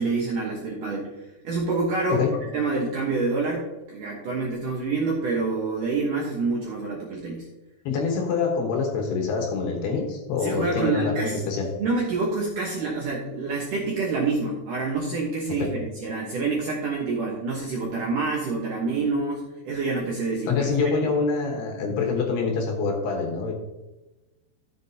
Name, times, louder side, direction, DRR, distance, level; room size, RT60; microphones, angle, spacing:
voice 1, 0.0-2.2 2.5-7.5 10.4-11.4 11.8-15.7 16.0-20.7, right 3 dB, 70° right, -2 dB, 2.1 m, -27 dB
voice 2, 7.8-11.7 15.5-15.8 20.5-23.5, left 4 dB, 70° left, 2 dB, 3.1 m, -25 dB
13.5 x 7.6 x 2.8 m, 1.1 s
omnidirectional pair, 5.3 m